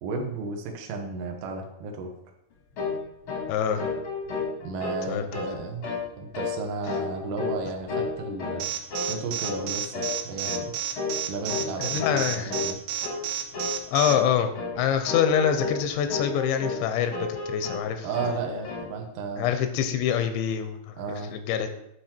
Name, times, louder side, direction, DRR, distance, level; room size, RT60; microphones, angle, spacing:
voice 1, 0.0-2.1 4.6-5.9 6.2-8.7 9.1-10.7 11.3-12.8 18.0-19.5 21.0-21.3, right 4 dB, 70° right, 2 dB, 2.2 m, -33 dB
sound 1, 2.8-3.0 3.3-3.5 3.8-5.0 5.3-5.6 5.8-6.1 6.3-6.6 6.9-7.6 7.9-8.6 8.9-9.1 9.4-9.6 9.9-10.2 10.4-10.7 11.0-11.2 11.5-11.7 12.0-12.2 12.5-12.7 13.0-13.2 13.5-13.8 14.0-14.3 14.5-14.7 15.1-15.8 16.1-16.8 17.1-17.8 18.1-18.9, left 4 dB, 55° left, 1.4 m, -31 dB
voice 2, 3.5-3.8 5.1-5.4 11.8-12.5 13.9-18.1 19.4-21.7, left 8 dB, 85° left, 8 dB, 3.0 m, -26 dB
Alarm, 8.6-14.1, right 11 dB, 90° right, 3.3 m, -30 dB
10.0 x 6.4 x 4.5 m, 0.80 s
omnidirectional pair, 5.2 m